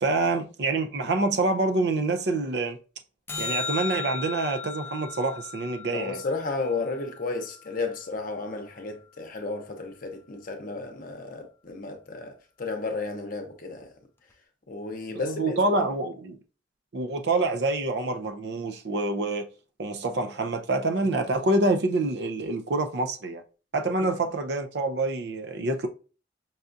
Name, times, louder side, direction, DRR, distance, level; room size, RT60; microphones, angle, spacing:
voice 1, 0.0-2.8 3.4-6.2 15.1-16.4 16.9-19.5 19.8-23.4 23.7-25.9, right 2 dB, 65° right, 0.5 m, -26 dB
sound 1, 3.3-7.8 14.3-14.4, left 5 dB, 10° left, 0.4 m, -36 dB
voice 2, 5.9-13.9 14.7-15.8 24.0-24.1, left 3 dB, 50° left, 0.7 m, -33 dB
5.5 x 2.4 x 2.5 m
head